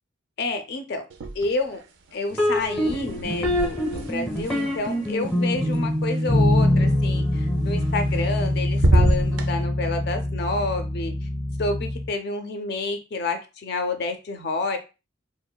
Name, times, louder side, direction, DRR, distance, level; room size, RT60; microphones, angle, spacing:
voice 1, 0.4-1.1 1.3-1.8 2.1-11.1 11.6-14.8, left 3 dB, 55° left, 7 dB, 0.4 m, -29 dB
sound 1, 1.1-1.8 2.1-6.2 7.8-8.4 8.7-9.5, right 1 dB, 65° right, 0.4 m, -26 dB
sound 2, 2.3-12.1, left 1 dB, 5° left, 0.5 m, -24 dB
2.9 x 2.1 x 2.2 m, 0.29 s
head